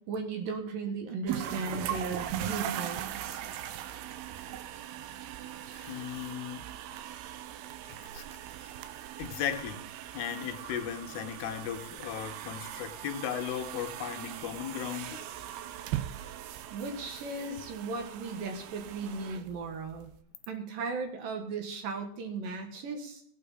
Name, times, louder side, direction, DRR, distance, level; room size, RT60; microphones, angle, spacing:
voice 1, 0.0-3.4 16.7-20.1 20.5-23.2, right 4 dB, 65° right, 2.9 m, -36 dB
sound 1, 1.3-20.2, right 11 dB, 85° right, 2.6 m, -40 dB
voice 2, 5.7-6.7 7.9-8.7 9.2-9.9 10.1-15.3, left 9 dB, 90° left, 3.0 m, -37 dB
17.5 x 8.7 x 4.1 m
omnidirectional pair, 4.5 m